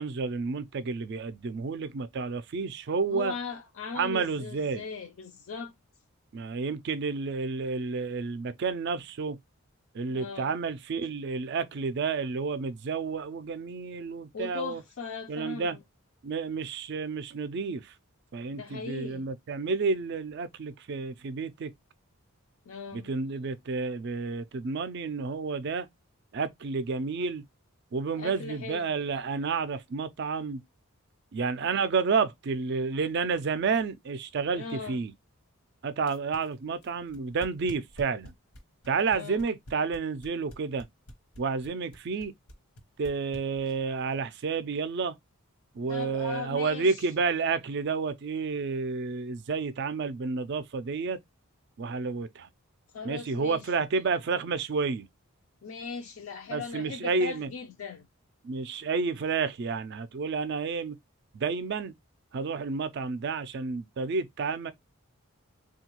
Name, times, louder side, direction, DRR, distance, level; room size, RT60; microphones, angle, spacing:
voice 1, 0.0-3.4 3.9-4.8 6.3-9.4 9.9-14.8 15.3-15.8 16.2-17.9 18.3-21.7 22.9-25.9 26.3-27.4 27.9-30.6 31.3-35.1 35.8-38.3 38.9-40.9 41.4-42.3 43.0-45.1 45.7-51.2 51.8-52.5 53.0-55.1 56.5-57.5 58.4-61.0 61.3-61.9 62.3-64.7, right 4 dB, 50° right, 0.3 m, -30 dB
voice 2, 3.1-5.7 10.1-10.5 14.3-15.8 18.6-19.3 22.7-23.1 28.2-28.9 34.6-35.0 39.1-39.4 45.9-47.0 52.9-53.7 55.6-58.1, left 5 dB, 65° left, 0.4 m, -39 dB
sound 1, 36.0-43.9, equal, 80° left, 0.9 m, -47 dB
3.6 x 2.3 x 2.9 m
head